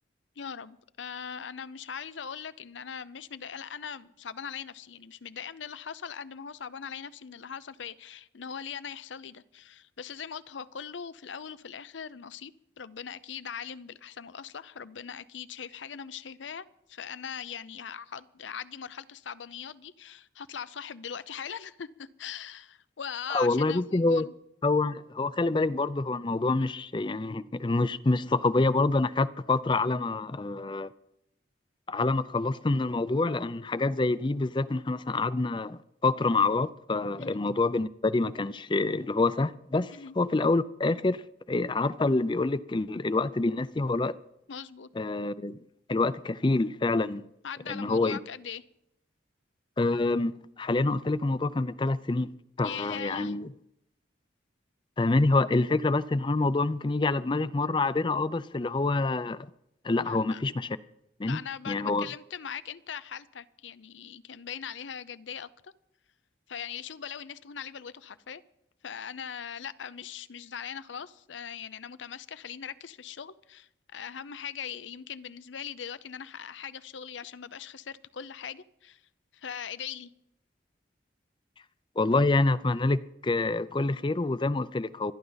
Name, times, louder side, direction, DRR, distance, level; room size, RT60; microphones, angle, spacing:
voice 1, 0.4-24.3 37.2-37.4 39.9-40.1 44.5-44.9 47.4-48.6 52.6-53.3 60.0-60.4 61.2-65.7 66.5-68.4 68.8-79.0 79.3-80.1, left 7 dB, 85° left, 0.6 m, -40 dB
voice 2, 23.3-24.3 24.6-30.9 31.9-41.2 41.5-44.2 45.0-45.6 45.9-47.2 47.7-48.2 49.8-52.3 52.6-53.5 55.0-59.5 59.8-60.8 61.2-61.4 61.7-62.1 82.0-85.1, left 3 dB, 25° left, 0.5 m, -27 dB
25.5 x 11.0 x 4.0 m
head